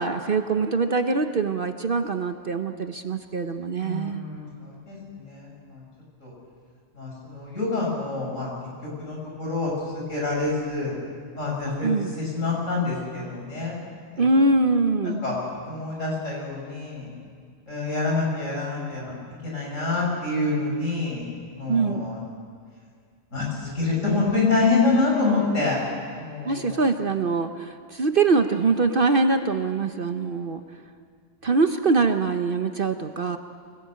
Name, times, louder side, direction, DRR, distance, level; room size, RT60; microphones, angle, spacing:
voice 1, 0.0-4.3 11.8-12.1 14.2-15.2 21.7-22.0 26.4-30.6 31.4-33.4, right 3 dB, 45° right, 7 dB, 1.0 m, -23 dB
voice 2, 3.8-5.8 6.2-6.3 6.9-8.5 8.8-10.9 11.3-11.9 12.2-13.8 14.1-14.3 15.0-15.4 15.7-17.1 17.7-19.1 19.4-21.2 21.5-22.2 23.3-25.8 26.1-26.8, left 3 dB, 65° left, -3 dB, 6.8 m, -26 dB
24.5 x 18.0 x 8.7 m, 2.1 s
omnidirectional pair, 1.4 m